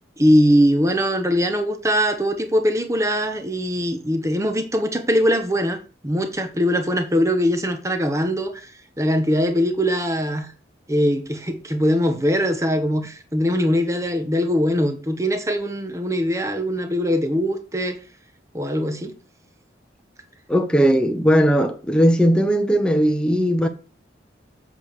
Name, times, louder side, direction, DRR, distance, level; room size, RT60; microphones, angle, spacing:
voice 1, 0.2-5.8 6.0-8.7 9.0-10.5 10.9-18.0 18.5-19.2, equal, 15° right, 1.0 m, -21 dB
voice 2, 20.5-23.7, equal, 5° left, 0.9 m, -18 dB
7.8 x 4.9 x 6.7 m
head